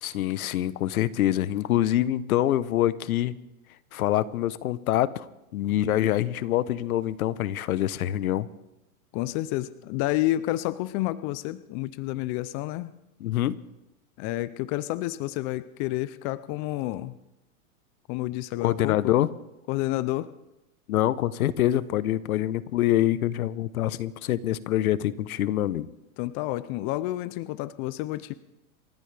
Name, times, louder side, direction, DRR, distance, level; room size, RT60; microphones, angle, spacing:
voice 1, 0.0-3.4 3.9-5.3 5.5-8.5 13.2-13.6 18.6-19.3 20.9-25.9, left 13 dB, 70° left, 17 dB, 1.0 m, -25 dB
voice 2, 9.1-12.9 14.2-17.2 18.1-19.1 19.7-20.3 26.2-28.3, left 16 dB, 30° left, 16 dB, 0.5 m, -30 dB
28.5 x 14.0 x 3.4 m, 0.95 s
hypercardioid pair, 130°, 44 cm